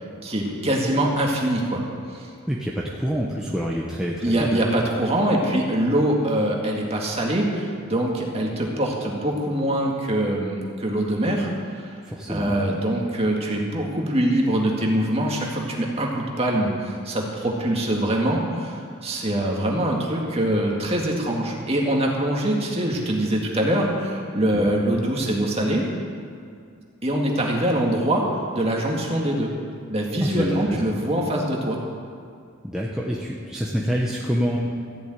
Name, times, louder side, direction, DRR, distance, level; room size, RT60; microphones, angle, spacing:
voice 1, 0.2-1.8 2.1-2.3 4.2-11.5 11.7-12.0 12.3-25.8 27.0-28.3 28.5-29.5 29.9-31.8, right 1 dB, 30° right, -1 dB, 2.0 m, -23 dB
voice 2, 2.5-4.7 12.1-12.6 24.5-24.7 30.2-30.8 32.6-34.6, equal, 5° right, -4 dB, 1.0 m, -27 dB
14.5 x 7.1 x 9.0 m, 2.3 s
head